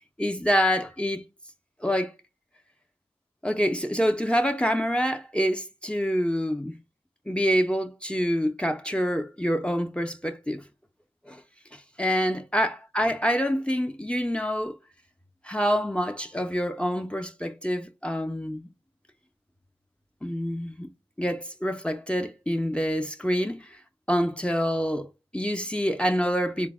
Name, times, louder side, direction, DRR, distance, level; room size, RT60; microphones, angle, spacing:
voice 1, 0.2-1.2 1.8-2.1 3.4-6.8 7.3-10.6 11.3-11.4 11.7-14.7 15.4-18.7 20.2-20.9 21.2-23.8 24.1-26.7, equal, 10° left, 0.4 m, -26 dB
4.0 x 2.0 x 3.4 m
wide cardioid pair, 45°, 11 cm